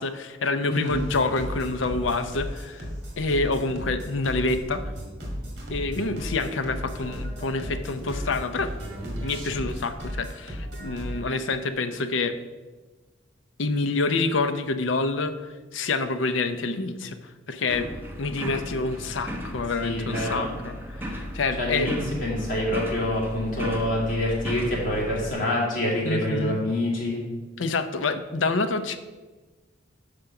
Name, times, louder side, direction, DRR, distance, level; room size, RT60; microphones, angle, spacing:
voice 1, 0.0-2.9 3.2-4.8 5.7-8.7 9.2-12.4 13.6-15.4 15.7-17.9 18.2-21.9 26.0-26.6 27.6-29.0, left 3 dB, 85° left, 10 dB, 0.6 m, -27 dB
voice 2, 0.7-1.0 19.8-20.6 21.6-27.2, left 1 dB, 45° left, -4 dB, 2.4 m, -26 dB
sound 1, 0.8-11.2, equal, 60° right, 2.1 m, -35 dB
sound 2, 17.7-25.3, equal, 10° right, 0.8 m, -35 dB
6.7 x 5.1 x 5.9 m, 1.3 s
head